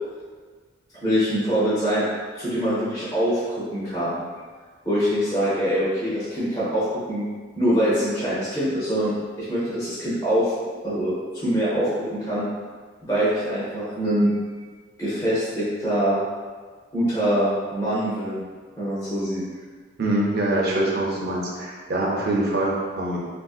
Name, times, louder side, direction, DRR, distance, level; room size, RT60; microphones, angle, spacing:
voice 1, 1.0-2.0 2.3-4.2 4.8-7.2 7.6-10.5 10.8-12.5 13.0-14.4 15.0-16.2 16.9-18.4 18.8-19.4, equal, 15° left, -11 dB, 0.7 m, -24 dB
voice 2, 20.0-23.2, right 1 dB, 45° right, -3 dB, 0.5 m, -24 dB
3.3 x 2.5 x 2.3 m, 1.5 s
head